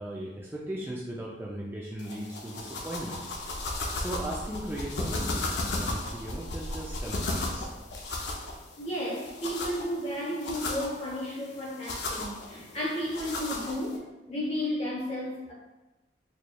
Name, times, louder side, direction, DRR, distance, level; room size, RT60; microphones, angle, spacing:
voice 1, 0.0-3.2 3.6-3.7 3.9-7.7, right 1 dB, 15° right, -4 dB, 0.3 m, -37 dB
sound 1, 2.0-14.0, left 2 dB, 75° left, 0.5 m, -35 dB
sound 2, 3.3-8.6, equal, 75° right, 0.6 m, -44 dB
voice 2, 8.8-15.5, equal, 35° left, -4 dB, 1.0 m, -33 dB
4.3 x 3.0 x 2.2 m, 1.0 s
head